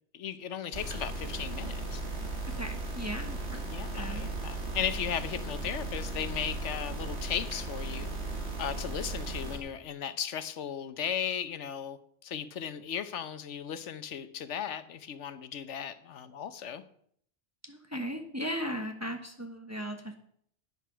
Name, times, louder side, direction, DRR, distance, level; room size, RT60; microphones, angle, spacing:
voice 1, 0.1-2.0 3.7-8.1 8.6-16.8, left 8 dB, 85° left, 12 dB, 1.2 m, -36 dB
sound 1, 0.7-9.6, right 2 dB, 65° right, 2.7 m, -36 dB
voice 2, 2.5-3.6 3.9-4.7 17.6-20.1, equal, 15° right, 4 dB, 1.2 m, -37 dB
10.0 x 9.9 x 6.1 m, 0.65 s
omnidirectional pair, 1.2 m